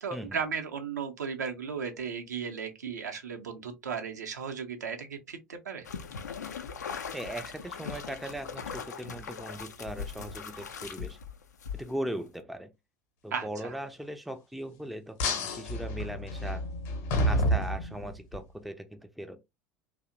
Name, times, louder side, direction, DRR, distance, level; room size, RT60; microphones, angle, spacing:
voice 1, 0.0-5.9 13.3-13.7, right 6 dB, 75° right, 0.5 m, -35 dB
sound 1, 5.8-12.1, left 6 dB, 80° left, 0.4 m, -40 dB
voice 2, 7.1-11.2 11.7-12.7 13.2-16.6 17.3-19.5, right 1 dB, ahead, 0.3 m, -39 dB
sound 2, 15.2-18.4, equal, 55° left, 0.8 m, -29 dB
2.7 x 2.0 x 2.5 m
figure-of-eight pair, 75°, 9 cm